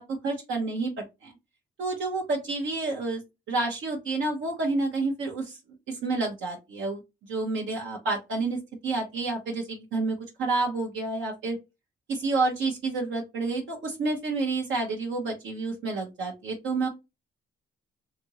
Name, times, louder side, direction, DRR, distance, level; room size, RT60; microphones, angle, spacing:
voice 1, 0.0-1.3 1.8-3.2 3.5-5.6 5.9-8.6 8.8-11.6 12.1-16.9, right 3 dB, 75° right, 0 dB, 0.9 m, -29 dB
2.7 x 2.6 x 2.8 m, 0.24 s
cardioid pair, 90°, 20 cm